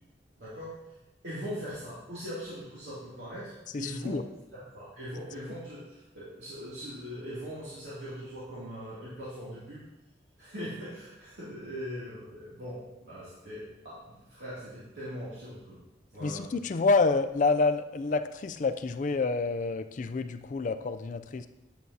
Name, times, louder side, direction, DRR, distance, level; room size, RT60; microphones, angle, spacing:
voice 1, 0.4-0.8 1.2-4.2 4.5-9.8 10.4-15.8 16.1-16.5, equal, 75° right, -10 dB, 2.6 m, -41 dB
voice 2, 3.7-4.2 16.2-21.5, left 3 dB, 45° left, 10 dB, 0.4 m, -28 dB
9.1 x 8.5 x 2.8 m, 1.0 s
head